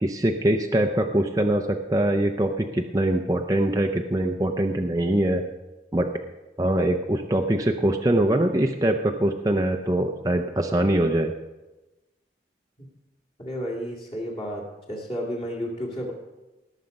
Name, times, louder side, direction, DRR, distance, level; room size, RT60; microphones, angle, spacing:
voice 1, 0.0-5.4 5.9-6.1 6.6-11.3, right 1 dB, 20° right, 4 dB, 0.5 m, -23 dB
voice 2, 13.4-16.1, equal, 30° left, -3 dB, 2.0 m, -32 dB
17.5 x 6.7 x 5.2 m, 1.1 s
head